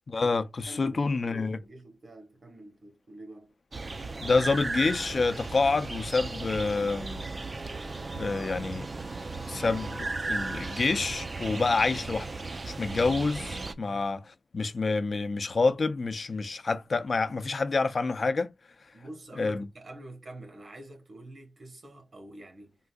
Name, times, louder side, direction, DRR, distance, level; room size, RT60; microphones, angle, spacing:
voice 1, 0.1-1.6 4.2-7.2 8.1-8.9 9.5-12.3 12.6-14.2 14.5-18.5 19.4-19.6, left 3 dB, 60° left, 0.5 m, -27 dB
voice 2, 0.7-3.5 13.9-14.1 18.9-22.8, right 1 dB, 70° right, 1.2 m, -47 dB
sound 1, 3.7-13.7, right 3 dB, 45° right, 0.4 m, -36 dB
3.8 x 2.5 x 2.3 m
wide cardioid pair, 70°, 0 cm